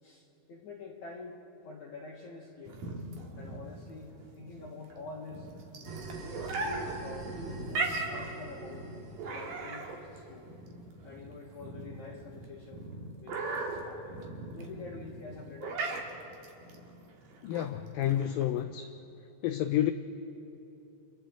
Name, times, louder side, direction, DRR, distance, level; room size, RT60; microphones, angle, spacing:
voice 1, 0.0-1.4 1.6-2.8 3.3-5.5 6.0-8.9 9.3-10.5 11.0-12.9 13.2-14.2 14.5-16.1, left 3 dB, 55° left, -3 dB, 2.5 m, -46 dB
sound 1, 2.7-18.6, right 3 dB, 65° right, 3.1 m, -39 dB
sound 2, 5.9-10.7, right 3 dB, 80° right, 3.8 m, -44 dB
voice 2, 17.4-19.0 19.4-19.9, left 12 dB, 80° left, 7 dB, 2.2 m, -29 dB
29.5 x 27.5 x 3.8 m, 2.8 s
omnidirectional pair, 4.4 m